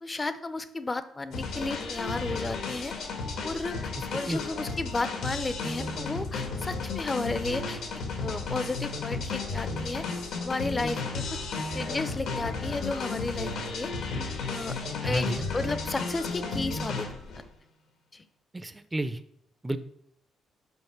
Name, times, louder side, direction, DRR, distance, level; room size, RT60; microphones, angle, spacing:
voice 1, 0.0-2.9 3.4-7.8 8.2-10.1 10.4-11.4 11.7-13.9 14.5-14.8 15.0-15.3 15.5-17.1 18.1-18.2, left 3 dB, 25° left, 12 dB, 0.6 m, -33 dB
sound 1, 1.3-17.4, left 4 dB, 80° left, 1.7 m, -33 dB
voice 2, 3.9-4.4 15.0-15.5 18.5-19.2 19.6-19.8, right 1 dB, 15° right, 12 dB, 0.6 m, -31 dB
5.4 x 5.3 x 5.9 m, 0.72 s
cardioid pair, 90°, 0 cm